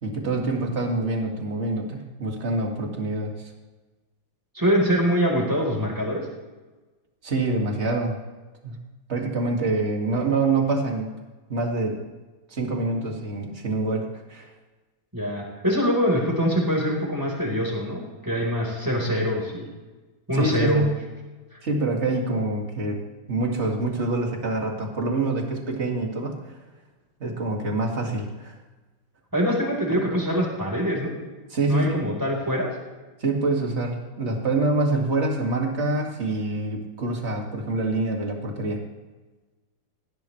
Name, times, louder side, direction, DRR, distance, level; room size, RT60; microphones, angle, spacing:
voice 1, 0.0-3.3 7.2-8.2 8.6-8.8 9.1-11.2 11.5-12.0 12.5-14.5 20.3-21.0 21.6-26.5 27.2-28.6 31.5-32.1 33.2-38.8, right 2 dB, 35° right, 1 dB, 2.4 m, -26 dB
voice 2, 4.5-6.3 15.1-19.7 20.3-20.8 21.5-21.6 29.3-31.1 31.7-32.7, equal, 10° right, -1 dB, 4.0 m, -24 dB
19.5 x 16.0 x 3.2 m, 1.2 s
omnidirectional pair, 2.0 m